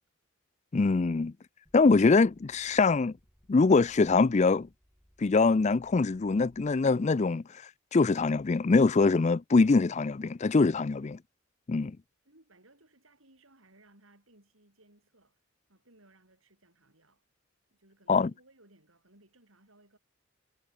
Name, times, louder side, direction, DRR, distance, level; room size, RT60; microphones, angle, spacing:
voice 1, 0.7-1.3 1.7-3.1 3.5-4.7 5.2-7.4 7.9-11.2 11.7-12.0 18.1-18.3, left 4 dB, 30° left, 0.4 m, -23 dB
sound 1, 1.6-7.0, equal, ahead, 4.1 m, -63 dB
voice 2, 12.2-15.4 15.7-17.2 17.7-20.0, right 2 dB, 70° right, 7.7 m, -62 dB
head